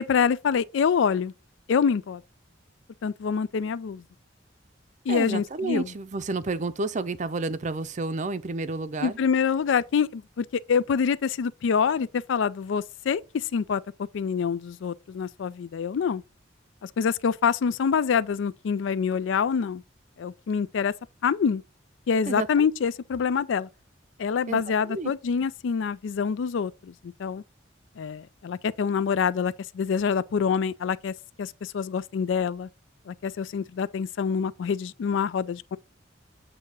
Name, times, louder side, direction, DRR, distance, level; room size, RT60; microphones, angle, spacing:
voice 1, 0.0-1.3 1.7-2.2 3.0-4.0 5.1-5.9 9.0-13.8 14.1-16.2 16.8-19.8 20.2-20.9 21.2-21.6 22.1-23.7 24.2-27.4 28.0-32.7 33.1-35.8, left 6 dB, 75° left, 0.4 m, -26 dB
voice 2, 5.1-9.2 22.3-22.6 24.5-24.6 24.9-25.1, right 3 dB, 40° right, 0.5 m, -30 dB
8.1 x 2.8 x 5.2 m
head